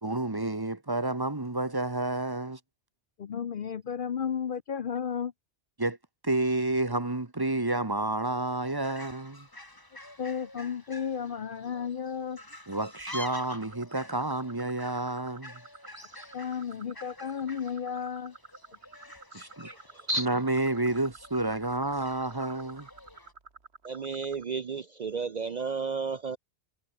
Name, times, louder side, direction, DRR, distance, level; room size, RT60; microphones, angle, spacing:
voice 1, 0.0-2.6 5.8-6.0 6.2-9.5 12.7-15.6 19.3-19.7 20.2-22.9, right 2 dB, 20° right, 1.2 m, -30 dB
voice 2, 3.2-5.3 10.2-12.4 16.3-18.3 19.3-19.4, left 7 dB, 55° left, 0.9 m, -33 dB
Fowl, 8.4-23.3, left 1 dB, 20° left, 2.3 m, -48 dB
sound 1, 13.1-24.4, right 4 dB, 70° right, 2.5 m, -50 dB
voice 3, 19.6-20.3 23.8-26.4, right 4 dB, 45° right, 0.7 m, -32 dB
omnidirectional pair, 1.1 m